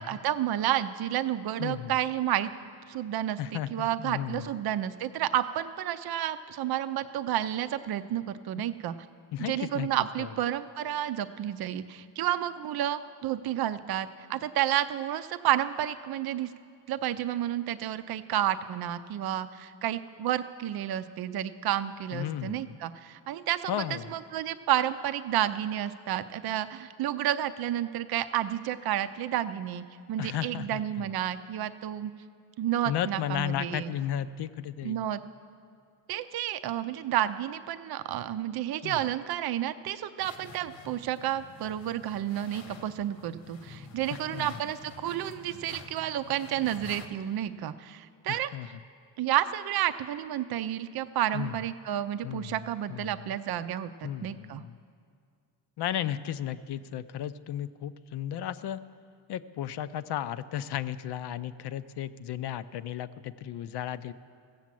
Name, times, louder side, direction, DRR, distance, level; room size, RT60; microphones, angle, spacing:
voice 1, 0.0-2.5 2.9-8.9 9.4-16.5 16.9-23.7 24.1-32.1 32.6-33.9 34.8-35.2 36.1-48.5 49.2-54.6, right 11 dB, 55° right, 11 dB, 0.6 m, -31 dB
voice 2, 1.6-1.9 3.4-4.5 9.3-9.9 10.2-10.3 22.1-22.8 23.7-24.1 30.2-30.8 32.9-35.0 38.8-39.0 44.1-44.6 48.3-48.7 51.3-51.6 52.2-52.6 52.9-53.4 54.0-54.8 55.8-58.8 59.3-64.1, left 11 dB, 60° left, 13 dB, 0.5 m, -34 dB
sound 1, 40.2-47.1, left 5 dB, 85° left, 1.3 m, -48 dB
15.5 x 7.3 x 7.5 m, 2.2 s
cardioid pair, 90°, 45 cm